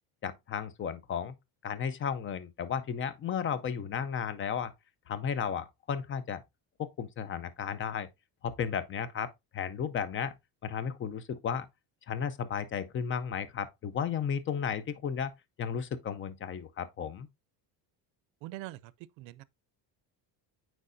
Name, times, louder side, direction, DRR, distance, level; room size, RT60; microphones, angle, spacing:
voice 1, 0.2-1.3 1.6-4.7 5.1-6.4 6.8-8.1 8.4-9.3 9.5-10.3 10.6-11.7 12.1-15.3 15.6-17.3, left 7 dB, 30° left, 0.5 m, -34 dB
voice 2, 18.4-18.9 19.2-19.4, right 17 dB, 85° right, 0.6 m, -43 dB
8.3 x 4.6 x 2.6 m
cardioid pair, 150°, 44 cm